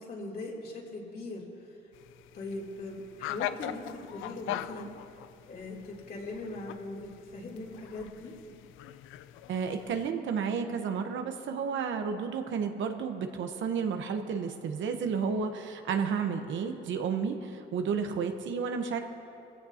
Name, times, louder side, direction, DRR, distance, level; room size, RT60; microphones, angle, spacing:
voice 1, 0.0-1.8 2.3-4.9 5.5-8.3, left 2 dB, 50° left, -3 dB, 3.2 m, -40 dB
sound 1, 1.9-10.1, left 13 dB, 90° left, 0.4 m, -41 dB
voice 2, 9.5-19.0, right 6 dB, 75° right, 6 dB, 1.1 m, -32 dB
21.5 x 15.5 x 2.9 m, 2.9 s
cardioid pair, 90°, 20 cm